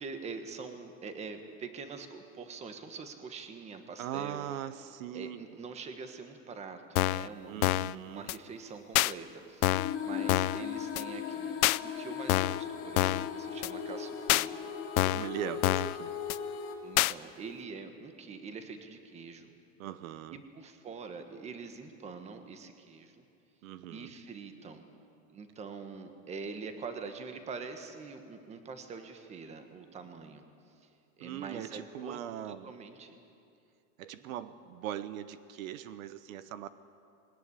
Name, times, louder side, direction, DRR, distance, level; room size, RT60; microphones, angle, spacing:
voice 1, 0.0-4.4 5.1-14.5 16.8-19.5 20.5-23.2 23.9-24.8 25.3-30.4 30.8-30.9 31.2-32.2 32.5-33.2 34.2-34.3, right 4 dB, 15° right, 7 dB, 1.4 m, -44 dB
voice 2, 4.0-5.6 7.5-8.3 15.1-16.1 19.8-20.4 23.6-24.1 31.2-32.8 34.0-36.7, right 11 dB, 75° right, 13 dB, 1.1 m, -40 dB
sound 1, 7.0-7.3 7.6-7.9 8.3-8.4 9.0-9.1 9.6-10.0 10.3-10.6 11.0-11.1 11.6-11.8 12.3-12.6 13.0-13.3 13.6-13.7 14.3-14.5 15.0-15.3 15.6-16.0 16.3-16.4 17.0-17.1, left 18 dB, 85° left, 0.6 m, -26 dB
sound 2, 9.7-16.7, left 7 dB, 30° left, 2.7 m, -38 dB
20.5 x 18.0 x 9.9 m, 2.5 s
supercardioid pair, 170°, 42 cm